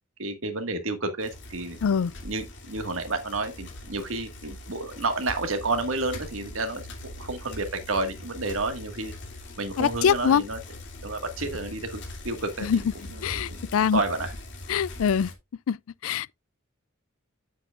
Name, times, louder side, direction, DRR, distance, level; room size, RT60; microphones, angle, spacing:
voice 1, 0.2-1.8 2.2-9.1 9.6-10.6 11.0-13.2 13.5-14.3, right 2 dB, 70° right, 1.7 m, -31 dB
Bicycle, 1.2-15.3, left 1 dB, 60° left, 2.5 m, -42 dB
voice 2, 9.8-10.4 12.6-12.8 13.2-14.0 14.7-15.3 15.7-15.8 16.0-16.3, left 7 dB, 80° left, 0.4 m, -23 dB
9.2 x 7.9 x 2.4 m
head